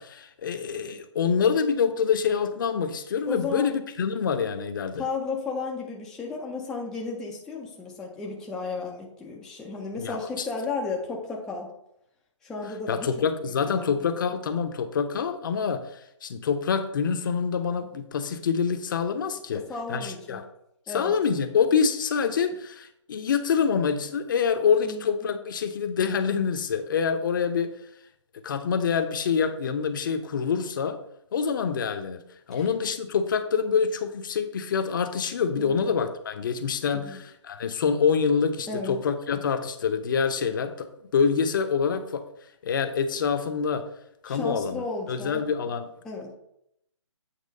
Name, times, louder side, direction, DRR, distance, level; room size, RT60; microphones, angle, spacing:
voice 1, 0.0-5.0 10.0-10.5 12.9-15.8 16.2-19.6 19.9-20.4 20.9-27.7 28.4-31.0 31.3-32.2 32.5-40.9 41.1-42.2 42.6-43.8 44.2-45.9, left 6 dB, 40° left, 8 dB, 0.7 m, -26 dB
voice 2, 3.3-3.8 5.0-11.7 12.4-13.1 13.4-13.9 19.5-20.4 20.9-21.1 24.8-25.0 32.5-32.7 35.5-35.9 36.9-37.2 38.7-39.0 44.3-45.5 46.0-46.3, left 4 dB, 5° left, -2 dB, 0.4 m, -34 dB
8.3 x 3.1 x 5.3 m, 0.76 s
figure-of-eight pair, 150°, 16 cm